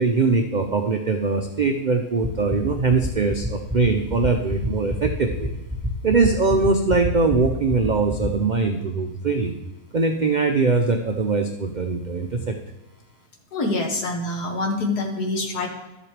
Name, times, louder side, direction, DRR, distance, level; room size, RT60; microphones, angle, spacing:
voice 1, 0.0-5.5 6.0-9.5 9.9-12.6, right 4 dB, 80° right, 4 dB, 0.4 m, -22 dB
sound 1, 2.2-8.3, equal, 5° left, 1.8 m, -26 dB
voice 2, 13.5-15.7, left 2 dB, 85° left, 3 dB, 1.9 m, -25 dB
12.0 x 7.4 x 3.3 m, 1.1 s
omnidirectional pair, 1.6 m